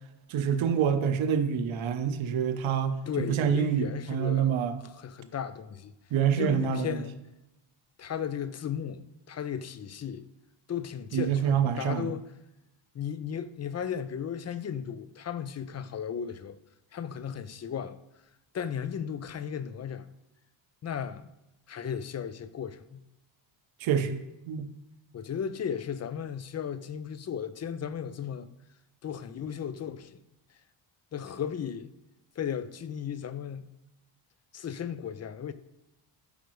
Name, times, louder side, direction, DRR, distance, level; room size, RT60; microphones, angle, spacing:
voice 1, 0.3-4.8 6.1-7.0 11.1-12.1 23.8-24.7, right 8 dB, 70° right, 1.0 m, -27 dB
voice 2, 3.1-4.5 4.8-5.9 6.3-7.2 8.0-10.2 10.7-12.3 12.9-16.6 16.9-18.0 18.5-20.1 20.8-21.3 21.7-23.0 25.1-28.5 29.0-30.2 31.1-31.9 32.4-33.7 34.5-35.5, left 8 dB, 35° left, 0.6 m, -35 dB
13.0 x 5.1 x 3.2 m
cardioid pair, 100°, 48 cm